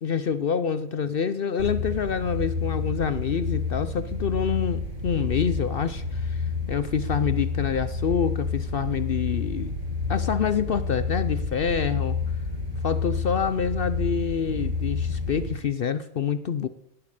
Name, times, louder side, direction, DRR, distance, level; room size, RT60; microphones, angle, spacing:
voice 1, 0.0-9.7 10.1-12.2 12.8-16.7, left 7 dB, 60° left, 13 dB, 0.6 m, -27 dB
sound 1, 1.6-15.5, left 4 dB, 55° right, 6.5 m, -29 dB
17.5 x 8.6 x 6.6 m, 0.81 s
omnidirectional pair, 1.6 m